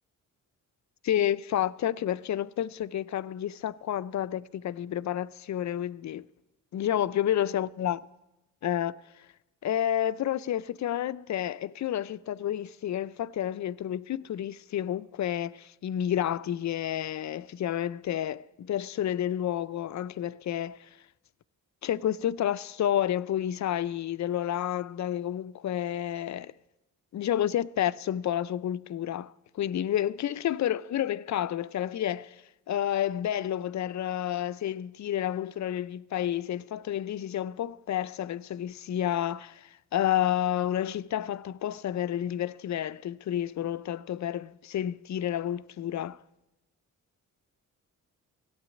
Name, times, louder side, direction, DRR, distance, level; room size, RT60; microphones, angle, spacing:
voice 1, 1.0-6.3 6.7-8.0 8.6-9.2 9.6-20.9 21.8-26.5 27.1-46.2, left 11 dB, 55° left, 0.6 m, -30 dB
16.0 x 8.2 x 9.8 m
cardioid pair, 65°, 35 cm